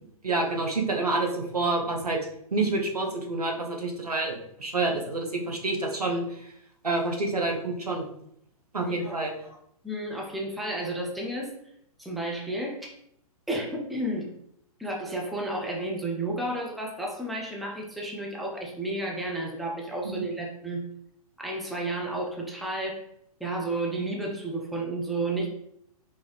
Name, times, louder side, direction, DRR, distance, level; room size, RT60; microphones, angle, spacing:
voice 1, 0.2-2.2 2.5-6.5 6.8-8.1 8.7-9.6 20.0-20.2, right 2 dB, 90° right, 2 dB, 0.9 m, -28 dB
voice 2, 8.8-9.2 9.8-11.5 12.0-12.9 13.5-14.3 14.8-20.8 21.4-23.0 23.4-25.5, right 1 dB, ahead, -2 dB, 0.5 m, -32 dB
4.6 x 2.7 x 3.1 m, 0.73 s
figure-of-eight pair, 120°, 19 cm